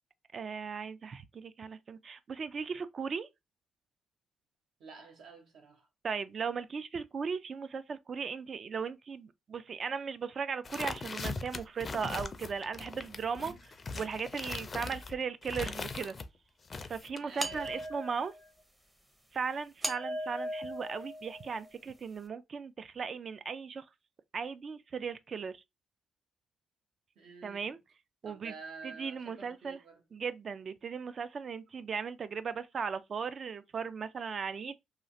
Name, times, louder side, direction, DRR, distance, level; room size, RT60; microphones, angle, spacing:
voice 1, 0.3-3.3 6.0-13.5 14.0-16.1 16.9-18.3 19.3-23.8 24.3-25.5 27.4-27.8 28.2-28.5 28.8-29.8 30.1-34.8, right 5 dB, 45° right, 0.3 m, -37 dB
voice 2, 4.8-5.9 13.4-13.6 17.2-17.8 27.2-27.8 28.2-30.0, right 4 dB, 75° right, 1.0 m, -50 dB
sound 1, 10.6-16.3 16.7-17.9, left 4 dB, 35° left, 0.4 m, -40 dB
sound 2, 17.4-18.5 19.8-21.7, equal, 15° right, 0.6 m, -38 dB
3.0 x 2.3 x 2.6 m
cardioid pair, 90°, 0 cm